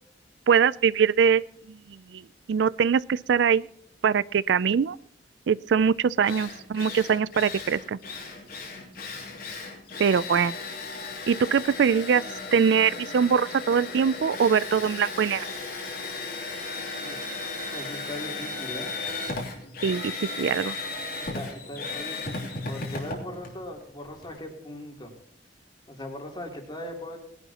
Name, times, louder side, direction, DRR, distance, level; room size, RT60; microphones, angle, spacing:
voice 1, 0.5-1.8 2.1-2.2 2.5-3.7 4.0-5.0 5.5-8.0 10.0-10.5 11.3-12.2 12.5-15.4 19.8-20.1 20.4-20.8, right 6 dB, 70° right, 20 dB, 0.4 m, -22 dB
Drill, 5.8-5.9 6.2-24.4, left 3 dB, 55° left, 3.0 m, -36 dB
voice 2, 17.0-17.3 17.7-18.9 21.2-25.1 25.9-27.2, left 1 dB, 25° left, 1 dB, 3.2 m, -39 dB
19.5 x 11.0 x 2.9 m, 0.69 s
head